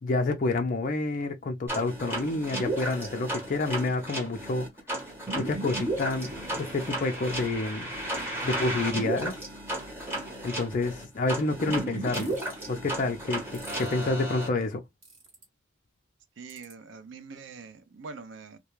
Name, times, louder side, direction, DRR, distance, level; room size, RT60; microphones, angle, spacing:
voice 1, 0.0-4.7 5.3-7.9 8.4-9.4 10.4-12.4 12.7-13.4 13.8-14.8, left 2 dB, 40° left, 0.4 m, -28 dB
sound 1, 1.7-14.5, right 1 dB, 10° right, 0.9 m, -34 dB
sound 2, 12.1-12.5 13.5-13.9 15.0-15.4 16.5-16.7, right 3 dB, 35° right, 1.3 m, -48 dB
voice 2, 16.4-18.6, right 4 dB, 65° right, 0.4 m, -44 dB
2.3 x 2.2 x 3.0 m
head